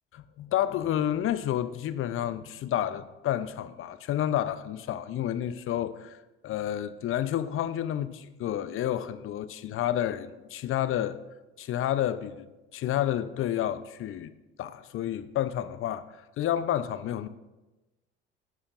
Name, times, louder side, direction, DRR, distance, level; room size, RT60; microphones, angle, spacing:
voice 1, 0.1-6.2 6.4-11.2 11.6-12.5 12.7-14.3 14.6-17.3, left 11 dB, 45° left, 0.6 m, -30 dB
14.0 x 9.7 x 2.5 m
hypercardioid pair, 55°, 30 cm